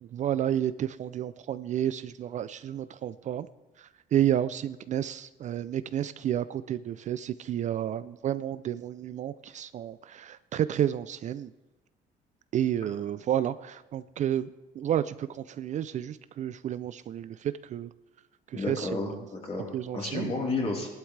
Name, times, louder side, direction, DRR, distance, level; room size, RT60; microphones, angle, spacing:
voice 1, 0.0-3.5 3.8-11.5 12.5-14.5 14.7-17.9 18.5-19.2 19.7-20.3, right 10 dB, 45° right, 14 dB, 0.4 m, -31 dB
voice 2, 18.5-19.1 19.4-20.9, left 3 dB, 35° left, -2 dB, 3.7 m, -31 dB
17.0 x 11.5 x 3.3 m, 1.0 s
cardioid pair, 110°, 17 cm